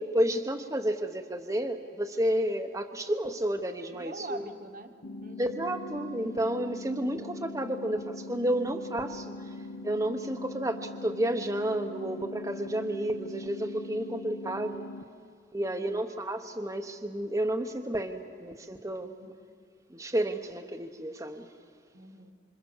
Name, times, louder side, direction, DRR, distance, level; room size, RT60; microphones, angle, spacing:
voice 1, 0.0-4.4 5.4-9.5 9.8-14.8 15.5-19.1 19.9-21.5, right 1 dB, 20° right, 4 dB, 1.0 m, -31 dB
voice 2, 3.9-4.9 5.2-5.6 15.6-16.1 19.0-19.5 21.9-22.3, right 2 dB, 50° right, 6 dB, 1.5 m, -44 dB
sound 1, 5.0-15.0, left 2 dB, 75° left, 1.0 m, -42 dB
26.5 x 26.5 x 7.2 m, 2.4 s
head